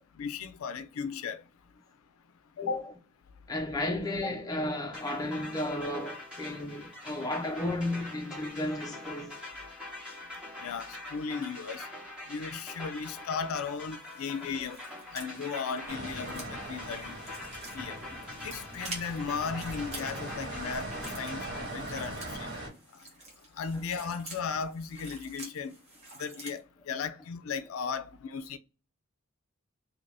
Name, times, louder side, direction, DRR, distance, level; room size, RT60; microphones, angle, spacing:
voice 1, 0.2-1.4 2.7-2.8 10.6-11.8 12.3-14.8 15.1-17.2 17.7-18.0 18.4-20.9 21.1-22.2 23.6-25.7 26.2-26.6 26.9-28.6, left 5 dB, 75° left, 0.4 m, -36 dB
voice 2, 2.6-2.9 3.5-9.4 11.3-11.4 14.4-14.6 15.3-15.5 23.7-23.9, left 1 dB, 15° left, 0.5 m, -34 dB
sound 1, 4.9-21.7, left 2 dB, 5° right, 0.9 m, -44 dB
sound 2, 13.9-26.6, right 2 dB, 30° right, 1.0 m, -48 dB
sound 3, 15.9-22.7, right 1 dB, 50° right, 1.7 m, -40 dB
2.8 x 2.6 x 3.2 m
head